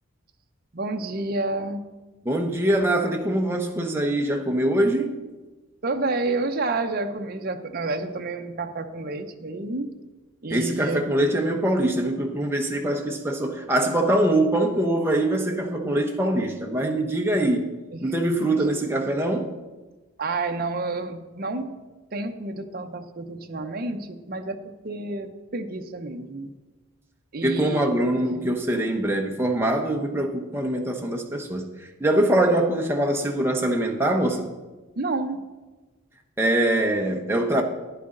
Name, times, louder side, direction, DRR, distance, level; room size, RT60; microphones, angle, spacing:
voice 1, 0.7-1.8 5.8-9.9 10.4-11.2 17.9-18.0 18.5-18.6 20.2-21.7 22.1-24.6 24.8-26.5 27.3-28.0 28.3-28.5 35.0-35.5, right 2 dB, 45° right, 6 dB, 0.7 m, -29 dB
voice 2, 2.2-5.1 10.5-17.7 18.0-19.5 27.4-34.5 36.4-37.6, right 1 dB, 10° right, 2 dB, 0.9 m, -23 dB
11.0 x 9.7 x 3.8 m, 1.2 s
head